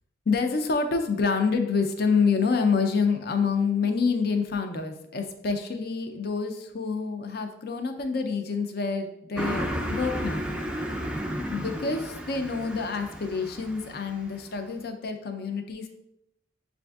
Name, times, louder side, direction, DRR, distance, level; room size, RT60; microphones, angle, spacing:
voice 1, 0.3-10.5 11.5-15.9, left 5 dB, 55° left, 6 dB, 0.5 m, -27 dB
Car passing by, 9.4-14.3, equal, 5° right, 0.3 m, -33 dB
6.9 x 2.5 x 2.3 m, 0.81 s
head